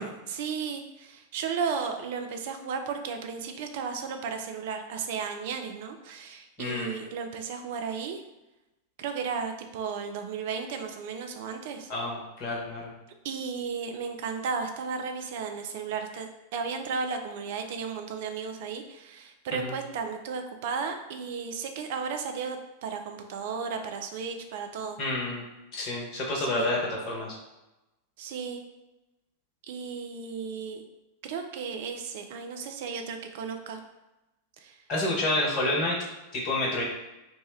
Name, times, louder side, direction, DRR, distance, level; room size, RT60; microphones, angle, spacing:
voice 1, 0.0-8.2 9.0-11.9 13.2-25.0 26.4-26.7 28.2-28.6 29.7-30.8 31.2-33.8 34.6-34.7, right 5 dB, 50° right, 6 dB, 0.4 m, -34 dB
voice 2, 6.6-7.0 11.9-12.9 19.5-19.7 25.0-25.4 25.7-27.3 34.9-35.9 36.3-36.8, left 2 dB, 40° left, -3 dB, 1.0 m, -29 dB
2.9 x 2.1 x 3.2 m, 1.0 s
figure-of-eight pair, 90°, 0 cm